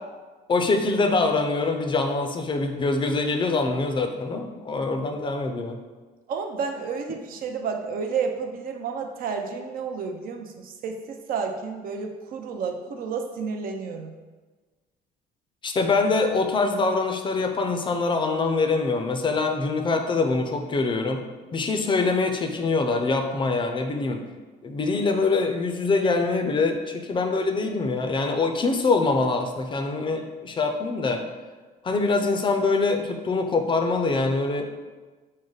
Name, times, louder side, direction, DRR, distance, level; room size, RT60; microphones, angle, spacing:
voice 1, 0.5-5.8 15.6-21.2 21.5-24.2 24.6-31.2 31.8-34.7, left 3 dB, 30° left, 5 dB, 0.5 m, -24 dB
voice 2, 6.3-14.1, right 5 dB, 60° right, 4 dB, 0.5 m, -31 dB
4.9 x 2.1 x 3.9 m, 1.3 s
cardioid pair, 110°, 17 cm